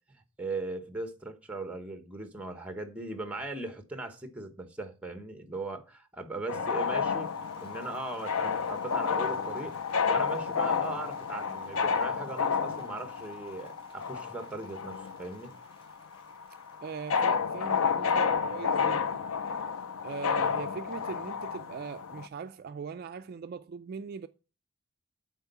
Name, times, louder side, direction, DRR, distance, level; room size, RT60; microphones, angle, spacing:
voice 1, 0.4-7.3 7.6-9.8 10.1-15.5, right 2 dB, 5° right, 1.1 m, -39 dB
sound 1, 6.5-15.5 15.7-22.3, left 6 dB, 70° left, 0.5 m, -30 dB
Applause, 7.0-18.3, left 1 dB, 25° left, 2.9 m, -61 dB
voice 2, 16.8-19.2 20.0-24.3, right 5 dB, 45° right, 0.3 m, -40 dB
8.1 x 4.5 x 6.8 m
head